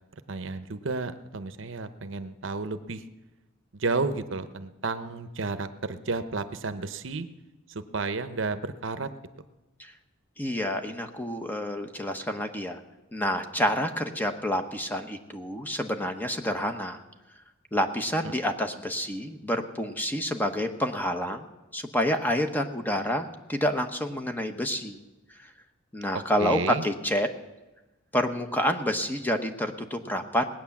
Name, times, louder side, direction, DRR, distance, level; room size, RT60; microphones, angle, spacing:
voice 1, 0.3-3.0 3.7-7.3 7.7-9.1 18.2-18.3 26.1-26.8, right 3 dB, 65° right, 10 dB, 0.8 m, -32 dB
voice 2, 10.4-12.8 13.1-17.0 17.7-21.5 21.7-25.0 25.9-27.3 28.1-30.4, equal, 10° left, 6 dB, 1.0 m, -28 dB
19.0 x 9.1 x 7.2 m, 1.1 s
head